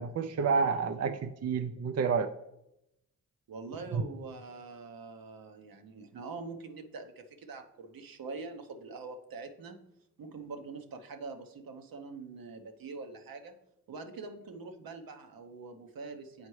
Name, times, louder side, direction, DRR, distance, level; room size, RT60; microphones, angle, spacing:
voice 1, 0.0-2.3 3.9-4.0, right 5 dB, 45° right, 9 dB, 0.5 m, -29 dB
voice 2, 3.5-9.8 10.2-13.5 13.9-16.5, right 4 dB, 70° right, 6 dB, 0.9 m, -44 dB
8.1 x 4.4 x 3.1 m, 0.84 s
supercardioid pair, 45°, 36 cm